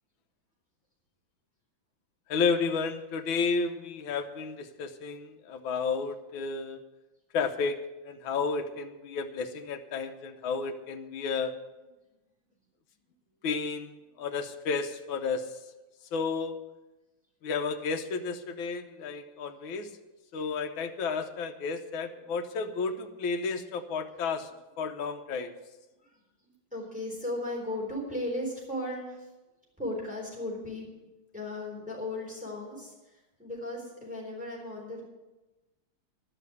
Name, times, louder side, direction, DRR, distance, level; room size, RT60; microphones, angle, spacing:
voice 1, 2.3-6.8 7.3-11.5 13.4-15.5 16.1-16.6 17.4-19.9 20.3-24.5 24.8-25.5, left 5 dB, 75° left, 6 dB, 1.7 m, -32 dB
voice 2, 26.0-29.3 29.8-30.9 31.3-35.0, left 1 dB, 5° right, -4 dB, 3.9 m, -36 dB
11.5 x 6.7 x 9.5 m, 1.1 s
omnidirectional pair, 2.2 m